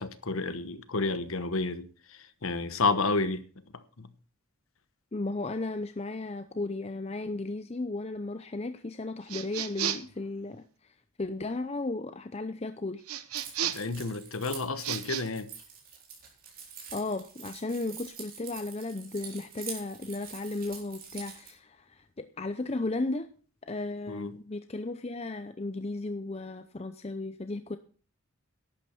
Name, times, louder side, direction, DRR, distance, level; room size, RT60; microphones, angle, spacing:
voice 1, 0.0-3.4 4.0-4.1 13.7-15.5 24.1-24.3, left 3 dB, 70° left, 1.1 m, -31 dB
voice 2, 5.1-13.0 16.9-23.3 23.6-27.8, left 2 dB, 30° left, 0.6 m, -35 dB
sound 1, 9.3-10.2 13.1-14.0 14.8-15.2, right 9 dB, 90° right, 1.0 m, -33 dB
Keys jangling, 13.3-21.5, right 6 dB, 40° right, 3.9 m, -45 dB
11.5 x 8.8 x 6.0 m
head